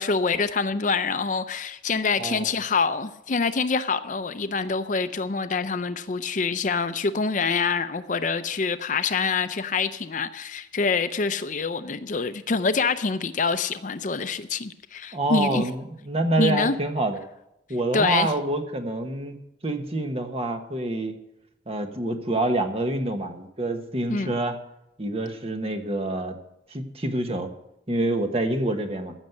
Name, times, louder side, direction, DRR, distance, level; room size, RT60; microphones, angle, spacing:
voice 1, 0.0-15.7 16.4-16.7 17.9-18.3 24.1-24.3, left 4 dB, 45° left, 0.5 m, -26 dB
voice 2, 2.2-2.5 15.1-17.3 17.7-19.4 19.6-21.1 21.7-24.5 25.0-26.4 26.7-27.5 27.9-29.1, right 2 dB, 35° right, 1.3 m, -27 dB
15.0 x 6.4 x 8.0 m
head